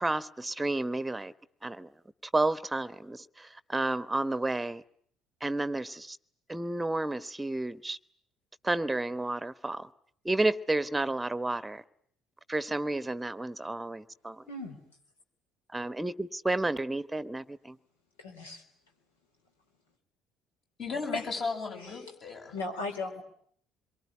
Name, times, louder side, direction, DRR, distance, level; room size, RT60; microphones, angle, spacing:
voice 1, 0.0-1.3 1.6-1.9 2.3-4.8 5.4-6.2 6.5-8.0 8.6-9.9 10.2-11.8 12.5-14.4 15.7-17.7, right 2 dB, 10° right, 1.1 m, -31 dB
voice 2, 18.2-18.6 21.1-21.3 21.8-21.9 22.5-23.2, left 3 dB, 75° left, 4.0 m, -36 dB
voice 3, 20.8-22.5, left 4 dB, 45° left, 8.0 m, -35 dB
26.5 x 23.5 x 9.7 m
figure-of-eight pair, 55°, 0 cm